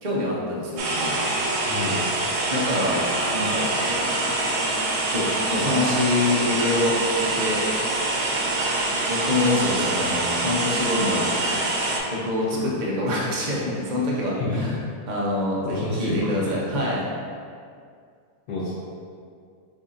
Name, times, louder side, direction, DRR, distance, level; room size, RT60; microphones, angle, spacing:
voice 1, 0.0-1.1 2.5-3.0 3.3-3.7 5.1-5.3 5.5-7.6 9.1-11.3 12.1-14.8 15.1-17.0, left 1 dB, 40° right, -5 dB, 0.7 m, -25 dB
sound 1, 0.8-12.0, right 2 dB, 90° right, 1.3 m, -25 dB
voice 2, 1.7-2.0 9.6-9.7 10.0-10.1 12.5-12.6 14.4-14.6 15.6-16.8 18.5-18.7, left 2 dB, 75° left, -8 dB, 1.2 m, -29 dB
7.1 x 2.7 x 2.5 m, 2.2 s
omnidirectional pair, 1.7 m